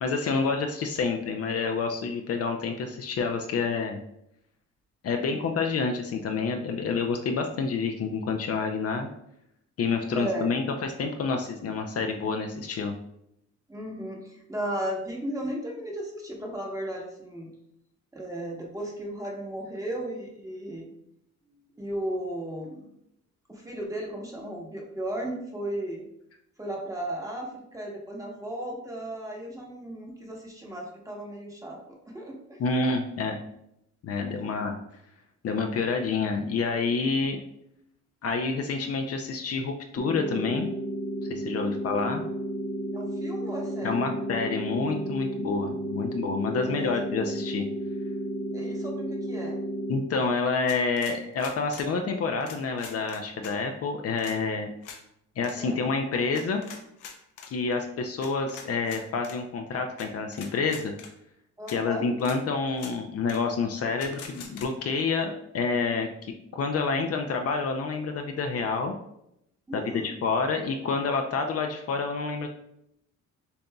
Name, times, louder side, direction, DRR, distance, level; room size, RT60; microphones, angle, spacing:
voice 1, 0.0-4.0 5.0-9.1 9.8-12.9 32.6-33.4 34.0-34.8 35.4-37.4 38.2-40.7 41.3-42.2 43.8-47.6 49.9-54.7 55.4-56.6 57.5-60.9 61.7-66.1 66.5-68.9 69.7-72.5, left 4 dB, 50° left, 4 dB, 0.5 m, -28 dB
voice 2, 5.2-5.5 10.1-10.5 13.7-17.5 18.1-20.9 21.7-22.9 23.5-26.1 26.6-32.6 34.3-34.6 42.0-42.2 42.9-44.1 46.5-46.9 48.5-49.6 55.6-55.8 61.6-62.1 69.7-70.1, right 1 dB, 10° right, -1 dB, 1.1 m, -35 dB
sound 1, 40.0-50.0, equal, 20° left, 0.9 m, -32 dB
sound 2, 50.7-51.9 52.4-53.5 54.2-54.4 54.8-55.0 55.4-55.6 56.3-57.5 58.2-59.4 60.0-60.1 60.3-61.1 61.7-61.8 62.2-62.4 62.7-62.9 63.3-63.4 64.0-64.7, left 6 dB, 90° left, 0.7 m, -43 dB
6.8 x 2.5 x 2.3 m, 0.77 s
cardioid pair, 90°, 30 cm